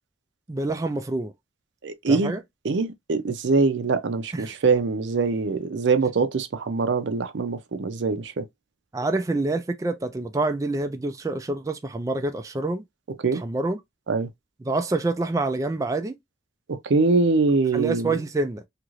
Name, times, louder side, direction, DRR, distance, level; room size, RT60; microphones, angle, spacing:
voice 1, 0.5-1.3 2.1-2.4 4.3-4.5 8.9-12.8 13.3-13.8 14.7-16.2 17.7-18.6, right 2 dB, 20° right, 0.3 m, -27 dB
voice 2, 1.8-2.4 2.6-8.5 13.2-13.4 14.1-14.3 16.7-18.2, right 4 dB, 80° right, 0.5 m, -23 dB
2.9 x 2.5 x 3.0 m
head